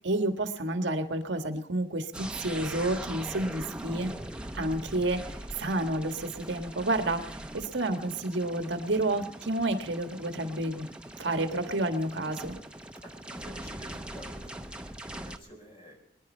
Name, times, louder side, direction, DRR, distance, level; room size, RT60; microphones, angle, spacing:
voice 1, 0.0-4.1 4.5-10.9 11.2-12.6, right 1 dB, 80° right, 7 dB, 1.5 m, -30 dB
sound 1, 2.1-15.4, right 1 dB, 5° right, 0.8 m, -41 dB
voice 2, 13.0-14.7 15.1-16.0, equal, 30° left, 1 dB, 4.5 m, -49 dB
23.5 x 11.0 x 4.4 m, 0.71 s
head